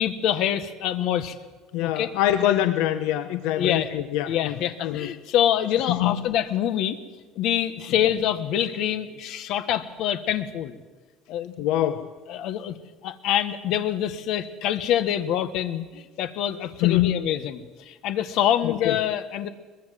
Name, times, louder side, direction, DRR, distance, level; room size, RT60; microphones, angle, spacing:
voice 1, 0.0-1.3 1.8-2.1 3.6-3.9 4.3-7.0 7.3-10.8 11.3-11.5 12.3-12.8 13.0-19.5, left 10 dB, 50° left, 11 dB, 1.4 m, -25 dB
voice 2, 1.7-4.5 4.8-5.1 5.9-6.1 11.6-12.1 16.8-17.2 18.6-19.0, left 13 dB, 70° left, 10 dB, 1.0 m, -24 dB
22.5 x 21.0 x 7.6 m, 1.3 s
cardioid pair, 170°, 0 cm